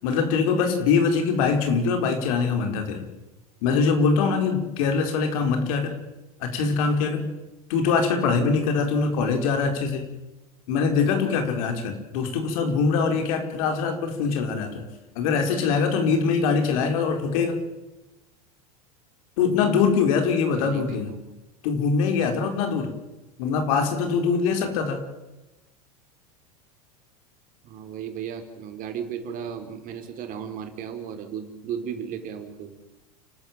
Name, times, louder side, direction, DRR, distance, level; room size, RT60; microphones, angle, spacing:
voice 1, 0.0-3.0 3.6-5.9 6.4-7.2 7.7-10.1 10.7-14.8 15.1-17.6 19.4-21.1 21.6-22.9 23.4-25.0, left 5 dB, 65° left, 6 dB, 4.9 m, -23 dB
voice 2, 20.5-21.0 27.6-32.8, right 8 dB, 45° right, 6 dB, 4.2 m, -35 dB
29.5 x 13.0 x 9.1 m, 1.0 s
hypercardioid pair, 90°, 19 cm